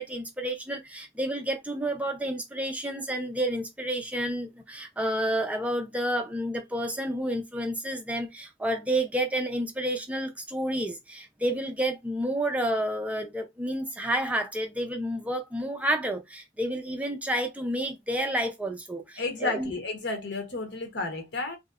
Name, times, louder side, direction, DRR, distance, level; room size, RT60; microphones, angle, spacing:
voice 1, 0.0-19.7, right 1 dB, 10° right, 0.4 m, -30 dB
voice 2, 19.2-21.6, left 3 dB, 65° left, 1.0 m, -32 dB
3.1 x 2.6 x 2.4 m
head